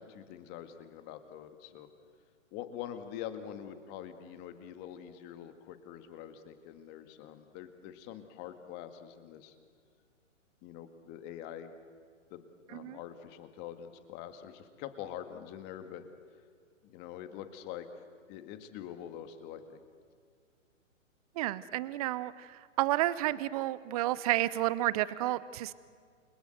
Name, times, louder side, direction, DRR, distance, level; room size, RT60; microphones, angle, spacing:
voice 1, 0.0-1.9 2.5-9.6 10.6-11.7 12.3-16.1 16.8-17.9 18.3-19.8, left 10 dB, 25° left, 9 dB, 1.9 m, -45 dB
voice 2, 21.4-25.7, right 15 dB, 30° right, 18 dB, 0.8 m, -31 dB
29.5 x 22.0 x 8.0 m, 2.1 s
hypercardioid pair, 140°, 38 cm